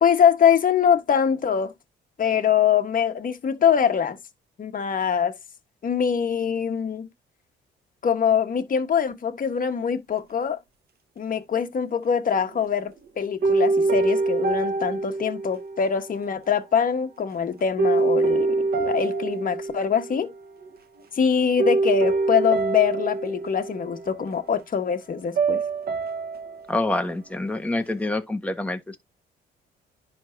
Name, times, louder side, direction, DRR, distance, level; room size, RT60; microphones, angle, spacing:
voice 1, 0.0-1.7 2.2-4.2 4.6-5.3 5.8-7.1 8.0-10.6 11.2-20.3 21.1-25.6, left 7 dB, 45° left, 1.3 m, -23 dB
sound 1, 12.3-13.0 13.4-16.1 17.8-20.3 20.6-21.0 21.6-24.4 25.3-26.8, right 3 dB, 50° right, 1.3 m, -25 dB
voice 2, 26.7-29.0, left 2 dB, 5° left, 1.3 m, -26 dB
10.5 x 3.5 x 2.7 m
cardioid pair, 90°, 20 cm